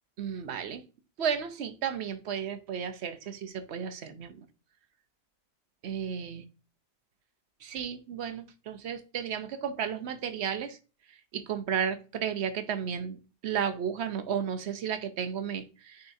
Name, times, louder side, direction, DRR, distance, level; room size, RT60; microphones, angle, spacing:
voice 1, 0.2-0.8 1.2-4.4 5.8-6.4 7.6-10.8 11.3-13.2 13.4-16.1, right 7 dB, 60° right, 9 dB, 0.8 m, -33 dB
9.3 x 3.9 x 2.6 m, 0.34 s
omnidirectional pair, 1.4 m